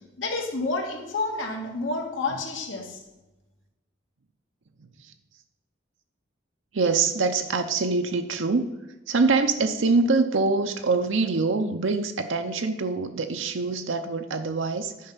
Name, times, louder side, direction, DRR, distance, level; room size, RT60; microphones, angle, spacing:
voice 1, 0.2-3.0, left 3 dB, 85° left, 2 dB, 1.7 m, -29 dB
voice 2, 4.8-5.1 6.7-8.7 9.1-15.1, right 3 dB, 80° right, 6 dB, 0.7 m, -24 dB
10.0 x 5.2 x 5.7 m, 1.0 s
head